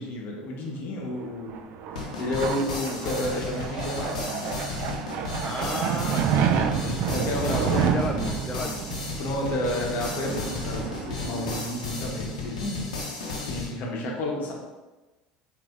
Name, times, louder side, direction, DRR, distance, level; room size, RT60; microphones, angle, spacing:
voice 1, 0.0-1.6 2.2-4.6 7.1-7.9 9.2-12.9 13.4-14.5, left 1 dB, 55° left, 0 dB, 1.0 m, -31 dB
sound 1, 1.2-12.5, right 8 dB, 60° right, 0.3 m, -30 dB
sound 2, 2.0-13.7, left 3 dB, 90° left, 0.8 m, -34 dB
voice 2, 2.9-3.5 5.4-8.9, left 2 dB, 25° left, 2 dB, 0.4 m, -34 dB
4.9 x 2.7 x 2.4 m, 1.1 s
hypercardioid pair, 75°, 4 cm